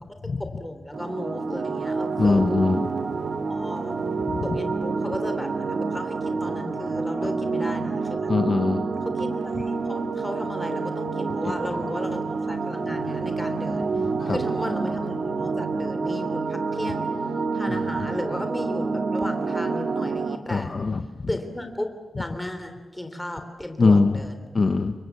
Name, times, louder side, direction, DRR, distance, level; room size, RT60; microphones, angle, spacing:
voice 1, 0.4-2.4 3.5-4.0 4.4-8.3 9.0-13.9 14.3-17.1 17.5-20.7 21.3-21.9 22.2-24.5, left 1 dB, 5° left, 6 dB, 3.4 m, -34 dB
sound 1, 0.9-20.4, right 4 dB, 50° right, 1.9 m, -28 dB
voice 2, 2.2-2.9 8.3-8.8 13.9-14.4 20.5-21.0 23.8-24.1 24.5-24.9, left 3 dB, 35° left, 8 dB, 1.1 m, -21 dB
29.0 x 23.5 x 8.4 m, 1.2 s
wide cardioid pair, 160°, 0 cm